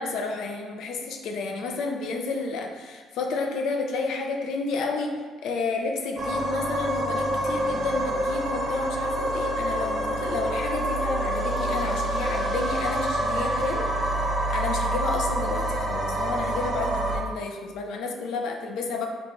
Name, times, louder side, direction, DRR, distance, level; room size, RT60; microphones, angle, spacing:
voice 1, 0.0-19.1, left 3 dB, 75° left, 2 dB, 0.4 m, -31 dB
sound 1, 6.2-17.2, right 1 dB, 45° right, 0.8 m, -27 dB
3.7 x 2.3 x 3.0 m, 1.5 s
supercardioid pair, 75°, 0 cm